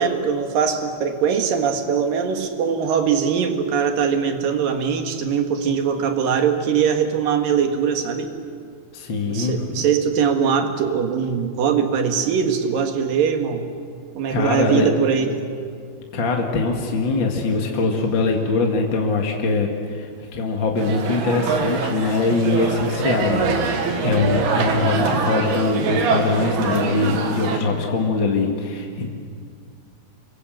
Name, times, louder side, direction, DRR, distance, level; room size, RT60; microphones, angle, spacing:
voice 1, 0.0-8.3 9.3-13.6 14.2-15.4, right 7 dB, 65° right, 5 dB, 3.3 m, -21 dB
voice 2, 8.9-9.7 14.3-14.9 16.1-29.1, left 3 dB, 40° left, 1 dB, 1.9 m, -22 dB
sound 1, 20.8-27.6, right 5 dB, 80° right, 4.0 m, -24 dB
sound 2, 22.8-27.2, left 1 dB, 80° left, 4.6 m, -37 dB
28.5 x 23.0 x 7.8 m, 2.2 s
omnidirectional pair, 4.5 m